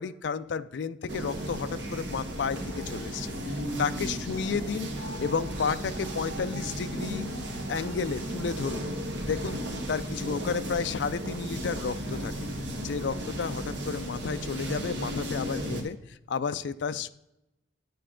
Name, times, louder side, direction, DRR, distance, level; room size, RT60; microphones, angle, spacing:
voice 1, 0.0-4.9 5.2-7.3 7.7-8.9 9.2-9.6 9.9-12.3 12.8-17.1, left 5 dB, 65° left, 12 dB, 0.4 m, -32 dB
sound 1, 1.1-15.8, equal, 60° right, 1.5 m, -35 dB
9.2 x 6.8 x 3.7 m, 0.89 s
head